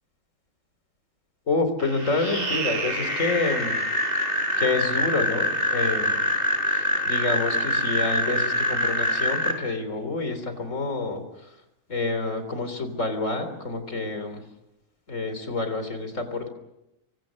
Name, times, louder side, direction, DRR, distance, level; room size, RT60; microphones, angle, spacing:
voice 1, 1.5-3.8 4.6-6.3 6.7-11.5 11.9-14.4 15.1-16.5, left 3 dB, 70° left, 9 dB, 3.8 m, -28 dB
sound 1, 1.8-9.5, equal, 45° right, 4.9 m, -25 dB
27.0 x 24.5 x 6.4 m, 0.90 s
omnidirectional pair, 1.4 m